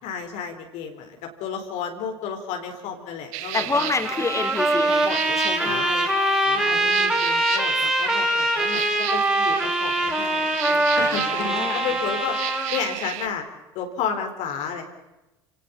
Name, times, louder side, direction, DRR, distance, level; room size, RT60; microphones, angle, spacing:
voice 1, 0.0-3.9 5.6-6.1 6.5-8.8 9.1-12.4 12.7-13.4 13.7-14.8, left 6 dB, 65° left, 4 dB, 4.2 m, -32 dB
sound 1, 3.3-13.3, right 15 dB, 65° right, 1.4 m, -33 dB
voice 2, 3.5-5.8 6.5-7.2 10.9-11.8, left 3 dB, 20° left, 5 dB, 4.3 m, -29 dB
Trumpet, 4.0-13.0, right 1 dB, 5° right, 5.9 m, -23 dB
29.5 x 18.0 x 7.1 m, 1.0 s
hypercardioid pair, 65°, 13 cm